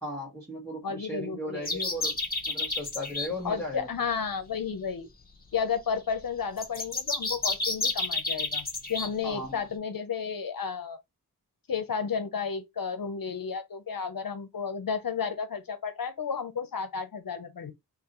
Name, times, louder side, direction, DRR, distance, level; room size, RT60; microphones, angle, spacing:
voice 1, 0.0-2.2 2.5-3.9 9.2-9.6, left 1 dB, 5° left, 1.6 m, -36 dB
voice 2, 0.8-1.8 3.4-5.1 5.5-11.0 11.7-17.7, left 6 dB, 60° left, 0.9 m, -32 dB
sound 1, 1.6-3.3 6.6-9.1, left 3 dB, 25° left, 1.2 m, -30 dB
3.8 x 3.2 x 3.1 m
wide cardioid pair, 75°, 39 cm